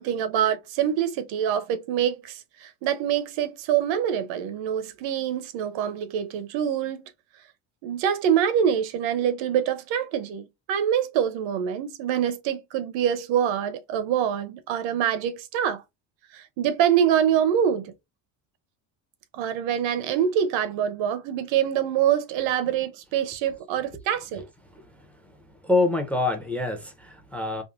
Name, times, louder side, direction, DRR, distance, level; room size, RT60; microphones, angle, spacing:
voice 1, 0.0-7.0 7.8-15.8 16.3-17.9 19.4-24.4, right 9 dB, 70° right, 0.8 m, -25 dB
voice 2, 25.6-27.6, left 3 dB, 5° left, 0.6 m, -25 dB
3.6 x 2.2 x 2.4 m
cardioid pair, 110°, 48 cm